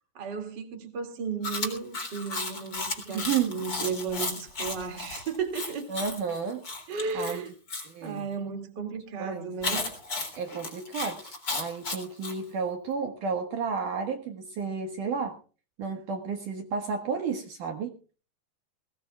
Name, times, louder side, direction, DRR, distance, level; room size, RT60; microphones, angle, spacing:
voice 1, 0.1-5.9 6.9-7.5 8.0-9.9, right 5 dB, 30° right, 5 dB, 2.5 m, -34 dB
Chewing mastication, 1.4-7.9 9.6-12.4, left 3 dB, 25° left, 3.7 m, -34 dB
voice 2, 3.1-3.5 5.9-6.6 7.1-7.4 7.9-8.3 9.2-9.5 10.4-15.4 15.8-17.9, right 6 dB, 60° right, 4 dB, 2.8 m, -32 dB
20.5 x 19.5 x 2.4 m, 0.37 s
omnidirectional pair, 4.6 m